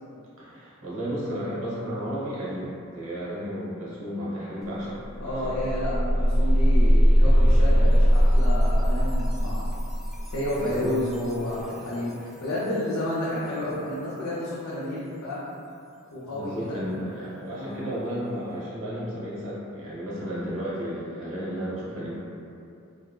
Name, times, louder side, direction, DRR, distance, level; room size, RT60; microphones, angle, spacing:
voice 1, 0.4-5.9 10.5-11.0 16.3-22.2, equal, 70° right, -8 dB, 0.9 m, -33 dB
sound 1, 4.6-4.7 5.0-11.8, equal, ahead, 0.3 m, -21 dB
voice 2, 5.2-9.7 10.3-15.4 16.1-16.8 17.5-17.8, left 1 dB, 90° left, -8 dB, 0.5 m, -30 dB
3.3 x 2.3 x 2.2 m, 2.6 s
head